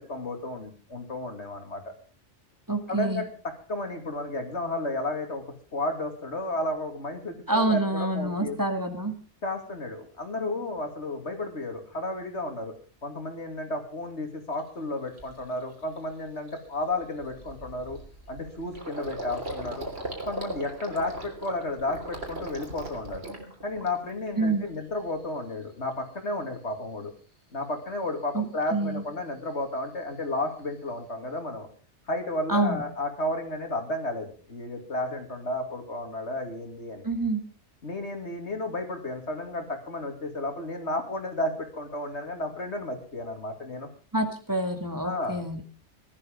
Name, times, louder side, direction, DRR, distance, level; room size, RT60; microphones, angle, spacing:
voice 1, 0.0-1.9 2.9-3.3 3.7-5.4 5.7-8.6 9.4-12.7 13.0-18.0 18.3-19.9 20.3-23.2 23.6-27.1 27.5-31.7 32.1-37.0 37.8-43.9 45.0-45.4, left 2 dB, 70° left, 5 dB, 3.1 m, -32 dB
voice 2, 2.7-3.2 7.5-9.1 24.4-24.7 28.3-28.4 28.7-29.0 32.5-32.8 37.0-37.4 44.1-45.6, right 2 dB, 15° right, 6 dB, 2.1 m, -27 dB
Gurgling, 14.6-14.7 15.2-15.4 15.8-16.0 16.2-24.3 24.6-25.3, right 1 dB, 60° right, 3.7 m, -39 dB
18.5 x 12.0 x 5.4 m, 0.38 s
omnidirectional pair, 1.2 m